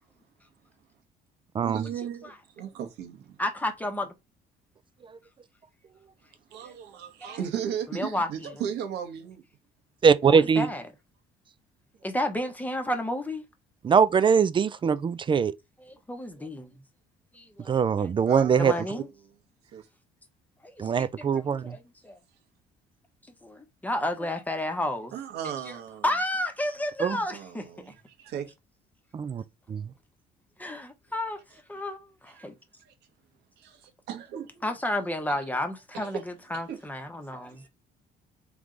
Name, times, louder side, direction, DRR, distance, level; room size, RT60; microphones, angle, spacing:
voice 1, 1.6-3.4 6.5-9.4 18.3-19.0 19.7-19.9 25.1-26.0 27.3-28.5 32.3-32.5 32.8-32.9 33.6-34.6 35.3-35.4 35.9-36.2 36.5-36.8 37.6-37.7, right 8 dB, 80° right, 1.2 m, -36 dB
voice 2, 3.4-4.1 7.2-7.4 7.9-8.3 10.3-10.8 12.0-13.4 15.8-16.8 17.3-18.1 18.6-19.1 20.6-22.2 23.4-25.1 26.0-27.9 30.6-32.5 34.6-37.6, left 1 dB, 10° left, 1.0 m, -32 dB
voice 3, 10.0-10.7 13.8-15.5 17.7-18.7 20.8-21.8 27.0-27.2 29.1-29.4 29.7-29.8, right 6 dB, 30° right, 0.4 m, -22 dB
3.6 x 3.2 x 3.8 m
cardioid pair, 110°, 17 cm